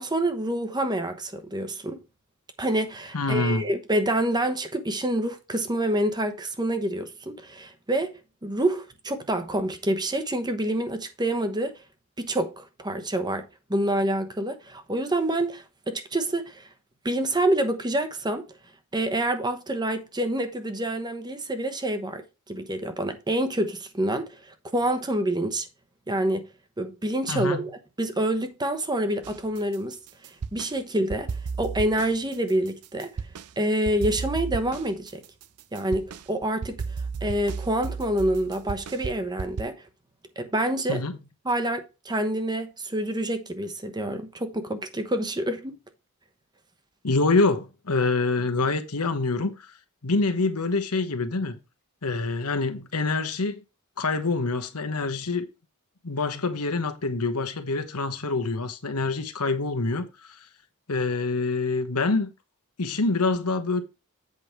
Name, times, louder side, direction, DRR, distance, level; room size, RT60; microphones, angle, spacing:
voice 1, 0.0-2.0 2.6-11.7 12.2-16.7 17.0-18.4 18.9-25.7 26.1-26.5 26.8-30.0 30.5-31.3 31.6-33.2 33.6-35.2 35.7-36.8 37.2-39.7 40.4-41.0 41.4-45.7, right 1 dB, 20° right, 1.0 m, -27 dB
voice 2, 3.1-3.6 27.3-27.6 40.9-41.2 47.0-49.6 50.0-51.6 52.0-53.6 54.0-55.5 56.0-60.1 60.9-62.3 62.8-63.8, left 3 dB, 90° left, 1.2 m, -26 dB
sound 1, 29.2-30.7 31.1-33.5 33.9-39.6, right 5 dB, 90° right, 0.6 m, -34 dB
8.1 x 5.2 x 4.5 m
head